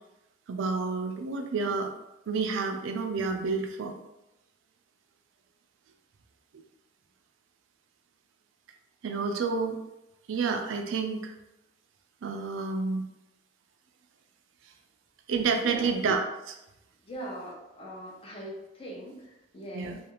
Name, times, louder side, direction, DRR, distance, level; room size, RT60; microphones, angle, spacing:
voice 1, 0.5-1.9 2.3-3.9 9.0-9.8 10.3-11.3 12.2-13.0 15.3-16.6 19.7-20.0, right 4 dB, 85° right, 5 dB, 0.4 m, -29 dB
voice 2, 15.6-16.0 17.0-20.0, right 1 dB, 30° left, -2 dB, 0.6 m, -41 dB
2.4 x 2.3 x 2.9 m, 0.92 s
head